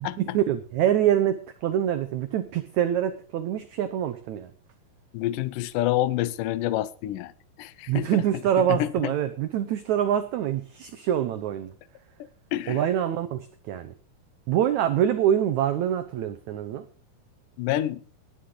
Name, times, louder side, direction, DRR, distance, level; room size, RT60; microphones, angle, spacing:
voice 1, 0.2-4.5 7.9-11.7 12.7-13.9 14.5-16.8, right 10 dB, 80° right, 1.6 m, -25 dB
voice 2, 5.1-7.3 7.6-8.2 8.7-9.1 12.5-12.8 17.6-18.0, left 14 dB, 75° left, 2.1 m, -27 dB
19.0 x 10.0 x 3.9 m
omnidirectional pair, 4.4 m